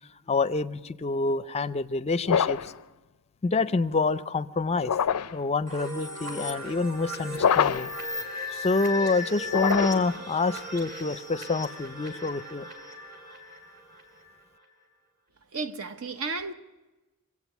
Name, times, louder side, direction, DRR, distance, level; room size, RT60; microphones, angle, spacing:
voice 1, 0.3-2.7 3.4-4.9 5.3-7.9 8.5-12.7, left 3 dB, 30° left, 0.5 m, -27 dB
sound 1, 2.2-2.8 4.8-5.4 7.3-8.0 9.4-10.2, left 7 dB, 85° left, 0.4 m, -25 dB
sound 2, 5.7-14.3, left 1 dB, 45° right, 2.6 m, -37 dB
voice 2, 15.5-16.5, right 3 dB, 65° right, 0.8 m, -33 dB
24.0 x 8.5 x 7.1 m
head